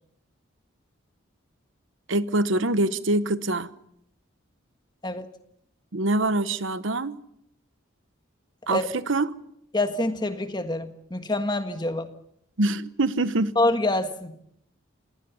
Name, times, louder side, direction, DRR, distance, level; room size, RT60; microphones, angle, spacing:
voice 1, 2.1-3.7 5.9-7.2 8.7-9.4 12.6-13.5, right 2 dB, 75° right, 1.0 m, -24 dB
voice 2, 9.7-12.1 13.5-14.3, left 2 dB, 20° left, 1.5 m, -26 dB
27.5 x 18.5 x 7.0 m
head